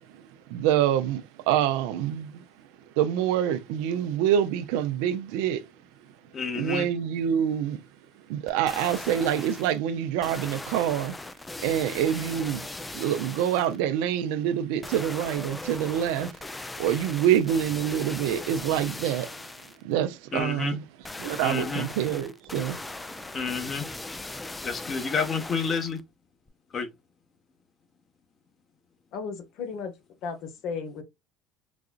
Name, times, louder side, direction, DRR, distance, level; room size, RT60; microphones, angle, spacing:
voice 1, 0.5-2.4 3.0-5.6 6.6-7.8 8.3-11.1 11.6-12.6 12.9-16.3 16.8-19.3 19.8-20.8 21.2-22.8, right 10 dB, 80° right, 0.5 m, -26 dB
voice 2, 6.3-6.9 20.3-20.8 21.4-21.9 23.3-23.9 24.6-26.0 26.7-26.9, left 5 dB, 40° left, 1.2 m, -29 dB
sound 1, 8.5-9.8 10.2-13.8 14.8-19.8 21.0-26.0 26.5-26.6, left 2 dB, 15° left, 0.4 m, -39 dB
voice 3, 29.1-29.9 30.2-31.0, left 5 dB, 70° left, 1.1 m, -34 dB
4.0 x 2.4 x 2.4 m
supercardioid pair, 80°, 0 cm